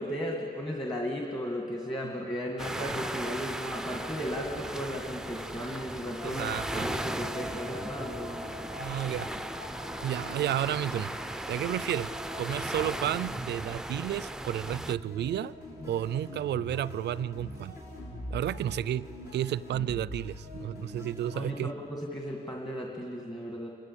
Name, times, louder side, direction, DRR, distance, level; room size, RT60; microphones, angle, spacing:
voice 1, 0.0-8.5 21.3-23.7, equal, 25° left, 0 dB, 2.1 m, -35 dB
sound 1, 2.6-15.0, right 1 dB, 5° right, 0.4 m, -37 dB
sound 2, 5.8-14.0 14.5-22.0, left 1 dB, 65° left, 4.8 m, -44 dB
voice 2, 6.2-6.9 8.8-9.4 10.0-15.5 15.8-17.8 18.3-21.7, right 11 dB, 75° right, 20 dB, 0.4 m, -32 dB
28.0 x 13.0 x 8.6 m, 2.9 s
cardioid pair, 95°, 18 cm